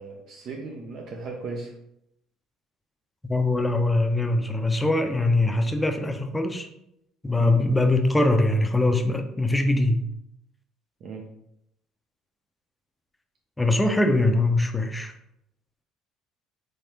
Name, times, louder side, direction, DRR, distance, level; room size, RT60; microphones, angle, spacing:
voice 1, 0.0-1.7 7.3-7.5 11.0-11.2, right 3 dB, 55° right, 1 dB, 0.5 m, -36 dB
voice 2, 3.2-6.7 7.2-10.0 13.6-15.1, left 2 dB, 15° left, 6 dB, 0.4 m, -22 dB
3.4 x 3.2 x 2.8 m, 0.80 s
supercardioid pair, 75°, 0 cm